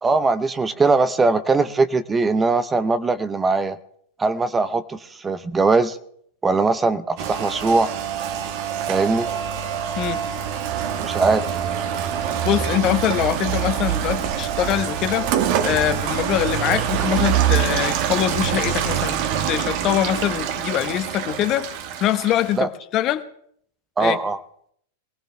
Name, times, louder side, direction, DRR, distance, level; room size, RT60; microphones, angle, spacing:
voice 1, 0.0-3.8 4.2-6.0 6.4-7.9 8.9-9.3 11.0-11.5 22.6-22.7 24.0-24.4, right 3 dB, 15° right, 0.8 m, -20 dB
Rain, 7.2-22.6, right 9 dB, 55° right, 1.5 m, -25 dB
voice 2, 12.4-15.3 15.6-19.2 19.5-23.2 24.0-24.2, left 12 dB, 40° left, 1.2 m, -23 dB
23.0 x 17.5 x 3.4 m
hypercardioid pair, 105°, 0 cm